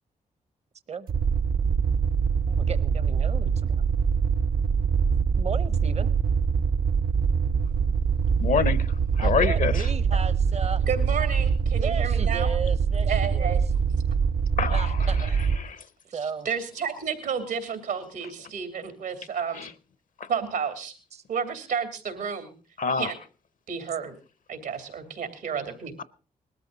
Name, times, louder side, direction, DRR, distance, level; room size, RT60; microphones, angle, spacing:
sound 1, 1.1-15.6, right 6 dB, 70° right, 0.9 m, -24 dB
voice 1, 2.5-3.8 5.4-6.1 9.2-10.8 11.8-13.6 14.7-15.4 16.1-16.5 21.1-21.2, right 5 dB, 45° right, 15 dB, 0.8 m, -35 dB
voice 2, 8.4-9.8 14.6-15.0 15.6-15.8 19.6-19.7 20.2-20.3 22.8-23.1, left 6 dB, 60° left, 18 dB, 0.8 m, -26 dB
voice 3, 10.9-12.5 13.0-13.6 16.2-19.6 20.3-20.9 21.3-22.5 23.0-23.2 23.7-24.1 24.5-26.0, right 6 dB, 90° right, 8 dB, 2.9 m, -31 dB
20.0 x 13.5 x 4.0 m, 0.35 s
supercardioid pair, 55°, 15 cm